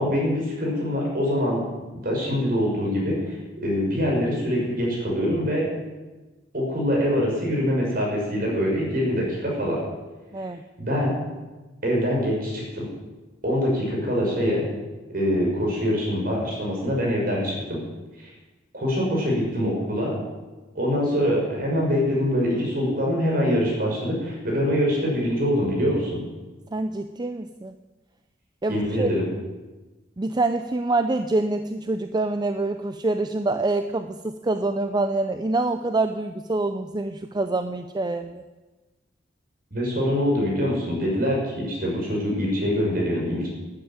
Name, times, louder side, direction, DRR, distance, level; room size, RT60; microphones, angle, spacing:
voice 1, 0.0-1.6 2.0-5.7 6.5-9.8 10.4-10.5 10.8-11.1 11.8-12.8 13.4-14.6 15.1-17.8 18.2-18.3 18.7-20.2 20.7-26.2 28.7-29.2 39.7-43.5, equal, 50° right, -2 dB, 6.0 m, -24 dB
voice 2, 26.7-27.7 28.6-29.1 30.2-38.4, right 2 dB, 25° right, 8 dB, 0.5 m, -26 dB
12.5 x 9.8 x 8.9 m, 1.2 s
head